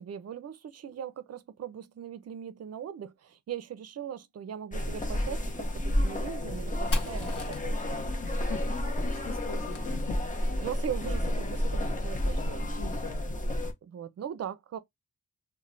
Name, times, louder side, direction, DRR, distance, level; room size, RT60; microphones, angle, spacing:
voice 1, 0.0-8.0 10.6-12.8 13.8-14.8, right 9 dB, 50° right, 0.4 m, -40 dB
sound 1, 4.7-13.7, left 1 dB, 25° left, 0.6 m, -31 dB
Fire, 6.9-10.6, left 1 dB, 45° left, 0.9 m, -38 dB
voice 2, 8.2-10.1 12.8-13.3, left 6 dB, 85° left, 0.6 m, -42 dB
3.0 x 2.1 x 2.5 m
wide cardioid pair, 145°, 32 cm